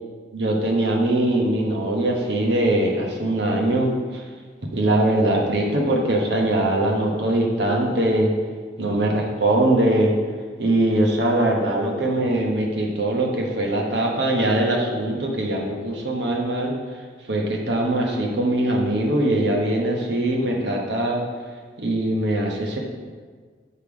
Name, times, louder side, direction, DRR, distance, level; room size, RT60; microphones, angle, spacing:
voice 1, 0.3-4.2 4.7-8.3 8.8-10.1 10.6-16.7 17.3-21.2 21.8-22.8, right 1 dB, 70° right, 0 dB, 1.0 m, -22 dB
6.6 x 3.6 x 4.8 m, 1.5 s
head